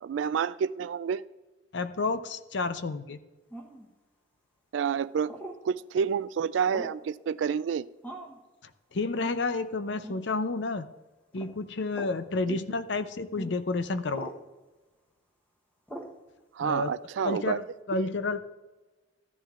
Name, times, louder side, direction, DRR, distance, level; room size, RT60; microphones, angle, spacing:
voice 1, 0.0-1.2 4.7-5.3 5.6-7.9 12.5-12.6 16.5-17.6 18.0-18.1, right 7 dB, 75° right, 16 dB, 0.3 m, -29 dB
voice 2, 1.7-3.2 8.9-10.9 11.3-14.3 16.6-16.9 17.2-18.4, left 3 dB, 65° left, 11 dB, 0.6 m, -30 dB
sound 1, 3.5-3.9 5.3-5.6 6.7-7.1 8.0-8.4 9.2-9.4 10.0-10.2 11.3-11.5 11.9-12.2 13.4-13.5 14.1-14.4 15.9-16.2, right 1 dB, 10° left, 1.0 m, -41 dB
14.5 x 11.0 x 2.5 m, 1.2 s
head